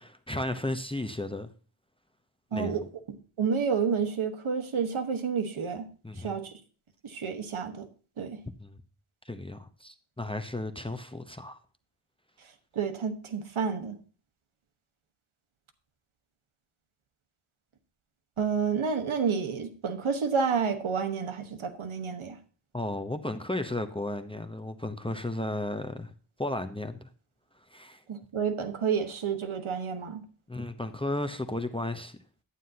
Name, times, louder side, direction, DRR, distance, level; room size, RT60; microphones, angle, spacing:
voice 1, 0.0-1.5 2.5-2.9 6.0-6.4 8.6-8.8 9.2-11.6 22.7-26.1 26.4-27.1 27.7-28.0 30.5-32.2, left 1 dB, 10° left, 0.8 m, -34 dB
voice 2, 2.5-2.8 3.1-5.9 6.2-6.5 7.0-7.9 8.2-8.4 12.7-14.0 18.4-22.4 28.1-30.2, right 6 dB, 75° right, 1.3 m, -30 dB
11.5 x 9.0 x 2.8 m
cardioid pair, 50°, 50 cm